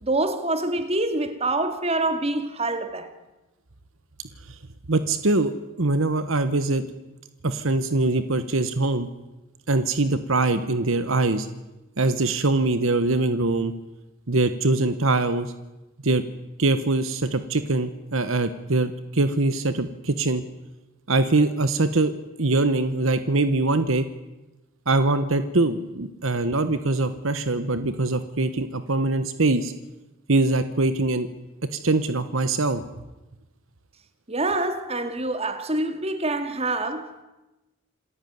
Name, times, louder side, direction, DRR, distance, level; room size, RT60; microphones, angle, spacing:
voice 1, 0.0-3.1 34.3-37.2, right 2 dB, 30° right, 2.2 m, -26 dB
voice 2, 4.9-5.5 5.8-6.8 7.4-9.1 9.7-11.5 12.0-13.7 14.3-15.5 16.0-16.2 16.6-20.4 21.1-22.1 22.4-24.1 24.9-29.7 30.3-31.3 31.7-32.8, right 2 dB, 70° right, 1.2 m, -23 dB
27.5 x 14.5 x 9.5 m
head